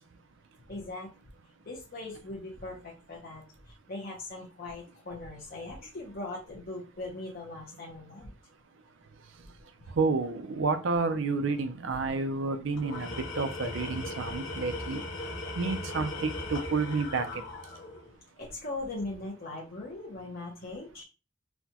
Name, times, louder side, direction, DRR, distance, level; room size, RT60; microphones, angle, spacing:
voice 1, 0.7-1.1 1.7-8.3 9.8-9.9 18.4-21.0, left 2 dB, 50° left, -3 dB, 0.7 m, -40 dB
voice 2, 10.0-15.0 15.6-17.3, right 4 dB, 70° right, 8 dB, 0.5 m, -30 dB
Tools, 12.7-18.1, left 2 dB, 65° left, 1.1 m, -38 dB
4.2 x 2.2 x 2.8 m, 0.32 s
head